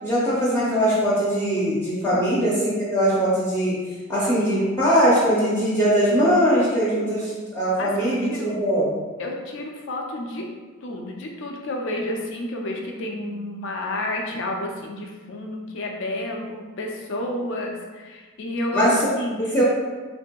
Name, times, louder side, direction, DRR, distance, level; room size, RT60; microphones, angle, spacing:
voice 1, 0.0-3.7 4.1-8.9 18.7-19.1 19.4-19.6, equal, 10° left, -9 dB, 0.6 m, -21 dB
voice 2, 7.8-8.5 9.2-10.5 10.8-18.9 19.1-19.4, left 1 dB, 65° left, 1 dB, 0.4 m, -30 dB
3.1 x 2.7 x 2.2 m, 1.3 s
head